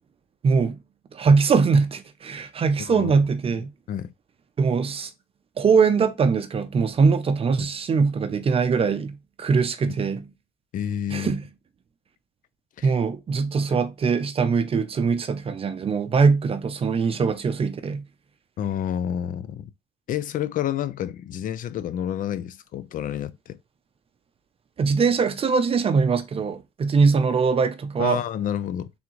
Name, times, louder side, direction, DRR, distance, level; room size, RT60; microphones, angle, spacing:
voice 1, 0.4-0.8 1.1-3.7 4.6-5.1 5.6-10.3 11.1-11.4 12.8-18.0 24.8-28.2, right 5 dB, 35° right, 0.6 m, -22 dB
voice 2, 2.8-3.1 3.9-4.1 7.6-7.7 9.8-9.9 10.7-11.3 12.8-12.9 18.6-19.7 20.1-23.6 28.0-28.9, left 10 dB, 55° left, 0.4 m, -29 dB
3.7 x 3.6 x 3.0 m
cardioid pair, 110°, 17 cm